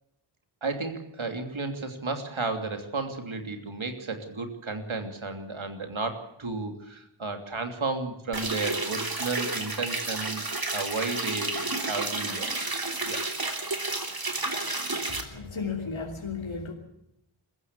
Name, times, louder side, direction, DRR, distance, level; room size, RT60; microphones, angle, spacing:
voice 1, 0.6-10.4 10.7-12.5 13.0-13.2, right 3 dB, 80° right, 6 dB, 3.1 m, -33 dB
sound 1, 8.3-15.2, right 2 dB, 50° right, 3.3 m, -31 dB
voice 2, 15.1-16.7, left 5 dB, 80° left, 0 dB, 3.2 m, -34 dB
23.0 x 15.0 x 8.2 m, 0.80 s
wide cardioid pair, 60°, 47 cm